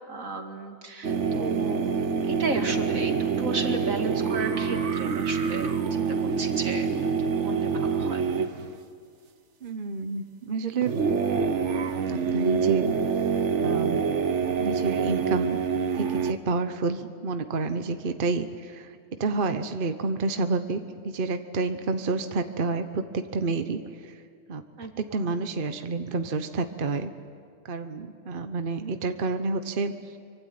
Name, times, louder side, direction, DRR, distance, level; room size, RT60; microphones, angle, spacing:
voice 1, 0.1-1.9 2.2-7.0 7.4-8.3 24.8-25.3, right 3 dB, 80° right, 4 dB, 2.7 m, -34 dB
sound 1, 1.0-8.7 10.8-16.3, right 6 dB, 60° right, 1.4 m, -26 dB
voice 2, 9.6-10.9 12.1-14.1 14.6-15.6 15.9-24.2 24.5-24.6 25.0-27.1 27.6-30.2, right 3 dB, 45° right, 8 dB, 1.1 m, -29 dB
25.0 x 24.5 x 9.4 m, 2.2 s
omnidirectional pair, 1.4 m